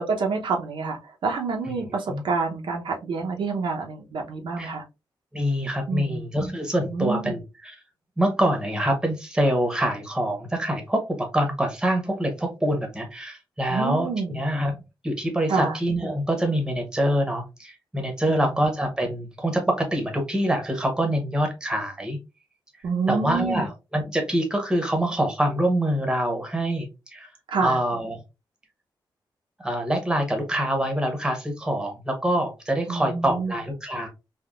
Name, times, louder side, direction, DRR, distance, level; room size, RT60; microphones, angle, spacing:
voice 1, 0.0-4.8 5.9-6.2 6.9-7.3 13.7-14.4 15.5-15.7 18.3-18.7 22.8-23.6 27.5-27.8 32.9-33.5, right 4 dB, 80° right, 1 dB, 0.7 m, -27 dB
voice 2, 5.3-7.7 8.2-22.2 23.1-27.3 27.6-28.2 29.6-34.1, right 1 dB, 10° right, 4 dB, 0.9 m, -25 dB
3.5 x 2.3 x 2.3 m, 0.25 s
wide cardioid pair, 145°, 8 cm